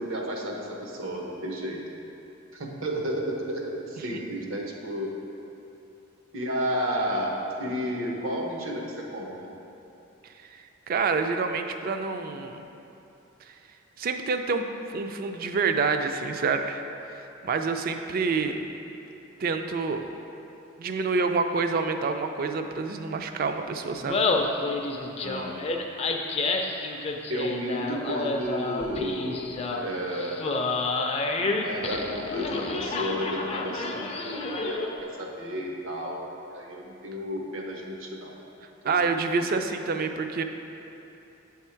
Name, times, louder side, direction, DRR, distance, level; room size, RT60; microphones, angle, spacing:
voice 1, 0.0-1.8 2.5-5.2 6.3-9.3 25.2-25.7 27.3-30.4 31.4-38.3 38.8-39.0 39.3-39.4, equal, 80° right, 0 dB, 0.9 m, -32 dB
voice 2, 10.5-12.7 14.0-14.6 14.9-16.8 17.4-18.6 19.4-20.1 20.8-24.3 38.8-40.4, right 4 dB, 45° right, 7 dB, 0.3 m, -27 dB
Laughter, 23.9-35.0, left 3 dB, 30° left, 0.4 m, -29 dB
8.1 x 3.5 x 4.4 m, 2.8 s
head